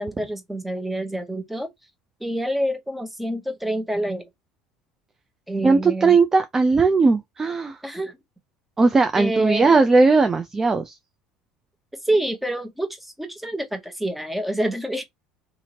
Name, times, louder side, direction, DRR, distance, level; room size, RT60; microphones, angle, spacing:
voice 1, 0.0-1.7 2.2-4.3 5.5-6.2 7.8-8.2 9.2-9.7 12.0-15.0, right 1 dB, 5° right, 0.9 m, -27 dB
voice 2, 5.6-7.8 8.8-11.0, right 4 dB, 20° right, 0.4 m, -18 dB
2.8 x 2.5 x 2.7 m
figure-of-eight pair, 65°, 2 cm